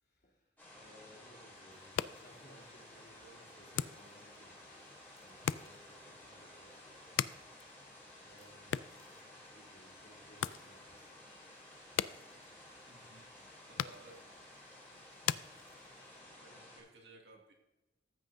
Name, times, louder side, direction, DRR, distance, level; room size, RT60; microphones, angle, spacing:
voice 1, 0.0-7.4 8.2-9.1 9.5-11.2, equal, 55° left, -3 dB, 3.1 m, -62 dB
sound 1, 0.6-16.8, left 1 dB, 10° left, 3.4 m, -55 dB
sound 2, 1.7-16.2, left 9 dB, 80° left, 0.3 m, -43 dB
voice 2, 12.9-13.3 13.7-14.2 16.2-17.5, right 2 dB, 60° right, 0 dB, 2.3 m, -58 dB
14.0 x 9.3 x 2.7 m, 0.99 s
head